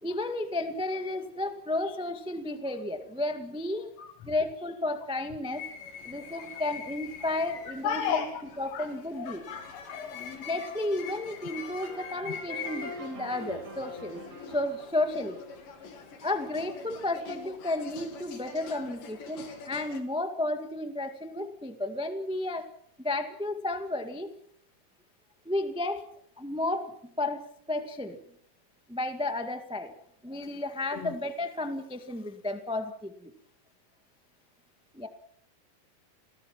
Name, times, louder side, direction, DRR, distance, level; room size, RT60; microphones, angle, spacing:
voice 1, 0.0-3.9 4.2-5.7 6.0-8.3 8.6-9.4 10.4-14.2 14.5-15.4 16.2-22.7 23.0-24.3 25.4-26.0 26.4-28.2 28.9-29.9 30.2-33.3 34.9-35.1, left 2 dB, 5° right, 7 dB, 0.8 m, -32 dB
sound 1, 5.5-20.0, left 6 dB, 80° left, 4.4 m, -44 dB
voice 2, 7.8-8.3 8.7-8.9 9.2-10.5 30.9-31.1, left 7 dB, 55° left, 6 dB, 2.4 m, -34 dB
sound 2, 11.8-16.4, equal, 50° right, 6.5 m, -44 dB
29.0 x 19.5 x 6.0 m, 0.65 s
omnidirectional pair, 3.9 m